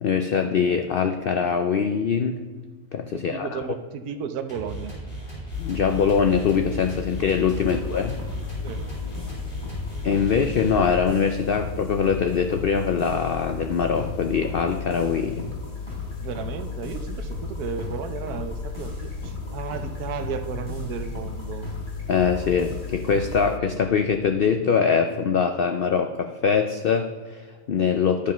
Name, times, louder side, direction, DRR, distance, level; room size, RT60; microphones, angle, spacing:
voice 1, 0.0-2.4 2.9-3.6 5.6-8.1 10.0-15.5 22.1-28.3, left 6 dB, 90° left, 6 dB, 0.5 m, -23 dB
voice 2, 3.1-4.9 7.6-7.8 8.6-8.8 16.2-21.7, right 6 dB, 80° right, 8 dB, 1.3 m, -34 dB
sound 1, 4.5-11.2, right 1 dB, 35° left, 3.1 m, -37 dB
sound 2, 5.5-23.6, left 13 dB, 60° left, 0.8 m, -38 dB
sound 3, 7.5-23.4, equal, 20° left, 3.3 m, -36 dB
11.5 x 5.1 x 5.5 m, 1.5 s
omnidirectional pair, 1.6 m